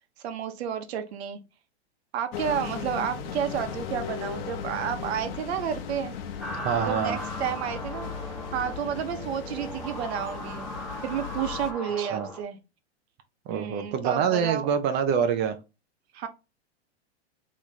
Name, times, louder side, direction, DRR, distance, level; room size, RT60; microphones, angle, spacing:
voice 1, 0.2-1.4 2.1-6.1 6.7-8.1 8.5-10.7 11.0-12.6 13.5-14.7 16.1-16.3, right 8 dB, 65° right, 8 dB, 1.0 m, -31 dB
sound 1, 2.3-11.7, left 7 dB, 60° left, 1.0 m, -37 dB
sound 2, 6.4-12.4, equal, ahead, 0.8 m, -38 dB
voice 2, 6.5-7.2 12.0-12.3 13.5-15.6, right 7 dB, 30° right, 8 dB, 0.6 m, -26 dB
3.5 x 3.1 x 4.1 m, 0.27 s
hypercardioid pair, 135°, 34 cm